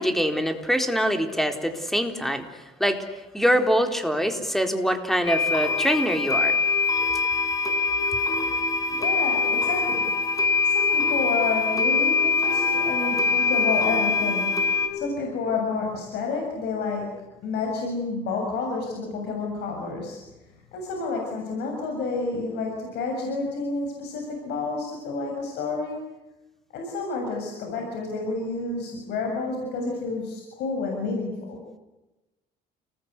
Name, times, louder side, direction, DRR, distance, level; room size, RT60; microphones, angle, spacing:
voice 1, 0.0-2.4 2.8-3.0 3.3-6.6, equal, ahead, 5 dB, 4.0 m, -24 dB
sound 1, 5.3-14.9, left 4 dB, 20° left, 6.7 m, -23 dB
voice 2, 8.9-10.1 10.6-17.1 17.4-20.2 20.7-26.0 26.7-31.6, left 3 dB, 80° left, 1 dB, 7.4 m, -30 dB
30.0 x 20.5 x 8.3 m, 1.0 s
cardioid pair, 110°, 17 cm